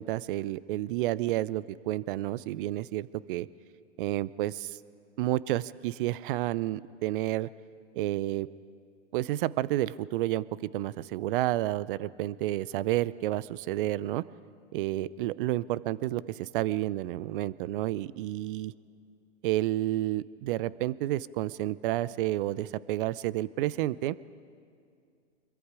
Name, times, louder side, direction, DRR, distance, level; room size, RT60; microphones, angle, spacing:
voice 1, 0.0-3.5 4.0-4.8 5.2-7.5 7.9-8.5 9.1-14.2 14.7-18.7 19.4-24.2, right 15 dB, 50° right, 20 dB, 0.6 m, -30 dB
25.5 x 22.5 x 4.9 m, 2.3 s
hypercardioid pair, 115°, 36 cm